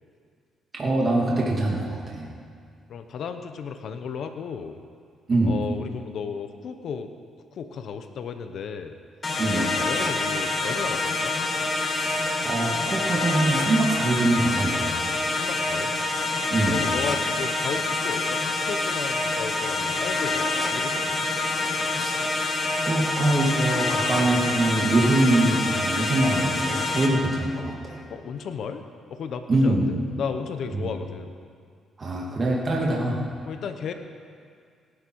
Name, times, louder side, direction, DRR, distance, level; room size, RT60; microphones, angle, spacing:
voice 1, 0.7-2.3 5.3-5.7 9.4-9.8 11.9-15.2 16.5-16.9 22.0-22.2 22.9-28.0 29.5-30.0 30.7-30.9 32.0-33.2, right 2 dB, 35° right, -3 dB, 2.6 m, -24 dB
voice 2, 2.9-4.8 5.5-7.1 7.5-9.0 9.5-11.4 15.3-15.9 16.7-21.4 27.5-27.7 28.1-28.8 29.1-31.3 32.8-33.0 33.5-33.9, left 6 dB, 65° left, 8 dB, 1.0 m, -34 dB
sound 1, 9.2-27.1, left 2 dB, 30° left, 1.9 m, -26 dB
18.0 x 11.5 x 4.7 m, 2.2 s
cardioid pair, 90°, 0 cm